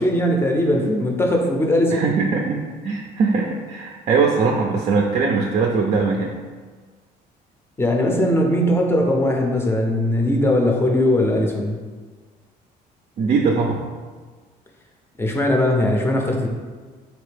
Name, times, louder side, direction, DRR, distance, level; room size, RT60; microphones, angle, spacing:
voice 1, 0.0-2.1 7.8-11.8 15.2-16.5, left 1 dB, 15° left, 1 dB, 0.6 m, -19 dB
voice 2, 1.9-6.3 13.2-13.8, right 4 dB, 45° right, 1 dB, 0.4 m, -21 dB
4.2 x 2.7 x 3.3 m, 1.5 s
cardioid pair, 110°, 17 cm